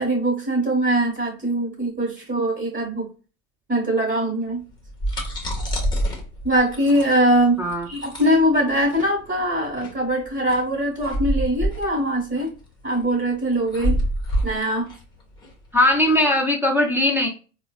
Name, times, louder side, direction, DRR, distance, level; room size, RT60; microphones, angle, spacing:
voice 1, 0.0-3.1 3.7-4.6 6.4-12.5 12.8-14.0 14.4-14.9, right 1 dB, 25° right, -2 dB, 1.4 m, -22 dB
sound 1, 4.7-16.1, equal, 10° left, 1.0 m, -28 dB
voice 2, 15.7-17.3, left 1 dB, 5° right, 1 dB, 0.6 m, -19 dB
3.9 x 2.2 x 2.3 m, 0.35 s
hypercardioid pair, 100°, 42 cm